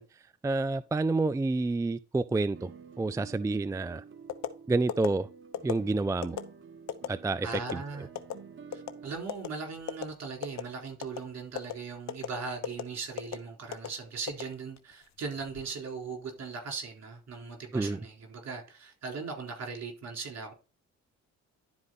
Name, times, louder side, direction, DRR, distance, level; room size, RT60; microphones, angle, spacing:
voice 1, 0.0-2.7 3.0-4.0 4.7-5.3 5.6-6.4 7.1-7.8 17.7-18.0, right 3 dB, 10° right, 0.4 m, -29 dB
sound 1, 2.5-9.1, right 6 dB, 40° right, 1.0 m, -50 dB
sound 2, 4.3-4.5 4.9-5.1 5.5-5.8 6.2-6.4 6.9-7.1 7.5-7.7 8.2-8.3 8.7-9.0 9.3-9.5 9.9-10.1 10.4-10.7 11.0-11.2 11.6-11.7 12.1-12.3 12.6-12.8 13.2-13.4 13.7-13.9 14.3-14.9 15.4-15.6, left 10 dB, 65° left, 1.1 m, -33 dB
voice 2, 7.4-8.1 8.7-20.5, right 4 dB, 60° right, 4.0 m, -39 dB
11.5 x 4.8 x 4.1 m
cardioid pair, 90°, 30 cm